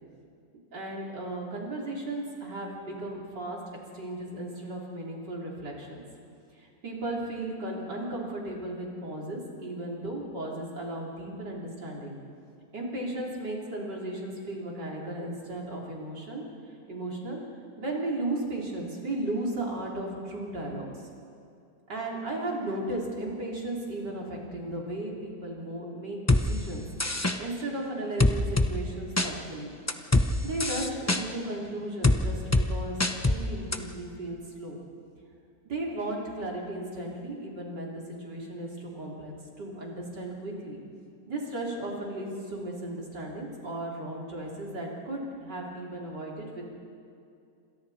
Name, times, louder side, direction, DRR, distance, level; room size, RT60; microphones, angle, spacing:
voice 1, 0.7-3.6 3.9-6.0 6.5-12.2 12.7-16.4 16.9-17.4 17.8-21.0 21.9-26.8 27.2-29.7 30.4-34.8 35.6-40.8 41.3-46.6, right 1 dB, 60° right, -3 dB, 4.4 m, -35 dB
sound 1, 26.3-26.4 27.0-27.4 28.2-28.7 29.2-29.3 29.9-30.3 30.6-31.2 32.0-32.2 32.5-32.7 33.0-33.4 33.7-33.8, left 2 dB, 15° left, 0.5 m, -22 dB
28.0 x 26.5 x 4.3 m, 2.5 s
omnidirectional pair, 2.0 m